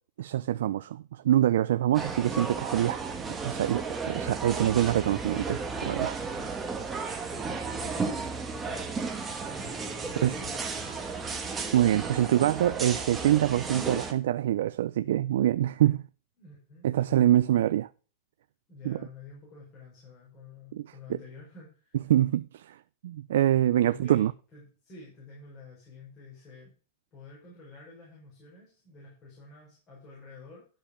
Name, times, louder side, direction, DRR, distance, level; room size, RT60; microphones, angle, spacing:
voice 1, 0.2-3.1 3.4-6.2 10.2-10.3 11.7-16.0 16.8-17.9 18.8-19.0 20.7-21.2 22.1-22.8 23.0-24.3, right 12 dB, 80° right, 0.4 m, -25 dB
sound 1, 1.9-14.1, right 4 dB, 15° right, 1.3 m, -34 dB
voice 2, 6.1-6.5 6.9-8.8 9.5-11.2 16.4-17.7 18.7-22.1 23.8-26.7 27.1-30.7, left 4 dB, 25° left, 5.0 m, -50 dB
12.0 x 5.5 x 5.0 m
supercardioid pair, 160°, 0 cm